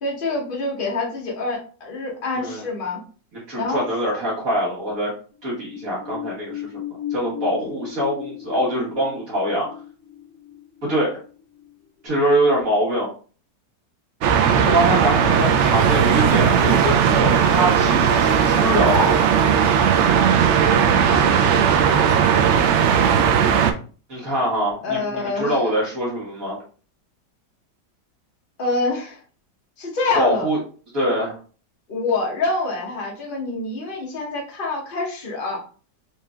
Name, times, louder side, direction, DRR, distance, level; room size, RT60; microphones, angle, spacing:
voice 1, 0.0-3.0 3.5-3.8 24.8-25.6 28.6-29.2 29.8-30.5 31.9-35.6, left 3 dB, 35° left, -1 dB, 1.1 m, -26 dB
voice 2, 3.5-5.1 5.4-6.7 7.1-9.7 10.9-11.2 12.0-13.1 14.7-19.2 24.1-26.6 30.1-30.6 30.9-31.4, equal, 55° right, -6 dB, 1.7 m, -23 dB
sound 1, 5.3-11.7 12.1-12.2, left 10 dB, 70° left, 1.9 m, -36 dB
sound 2, 14.2-23.7, right 7 dB, 90° right, 0.6 m, -17 dB
4.3 x 3.2 x 2.3 m, 0.39 s
omnidirectional pair, 1.8 m